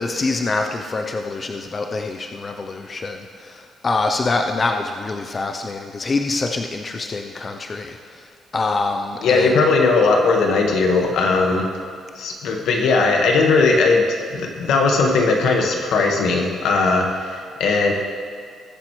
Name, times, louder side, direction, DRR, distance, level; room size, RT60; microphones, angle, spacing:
voice 1, 0.0-8.3 8.5-9.7, left 3 dB, 35° left, 4 dB, 0.7 m, -25 dB
voice 2, 9.2-11.7 12.1-14.0 14.3-17.9, left 3 dB, 80° left, 1 dB, 1.6 m, -18 dB
20.0 x 7.5 x 3.3 m, 2.2 s
cardioid pair, 90°, 0 cm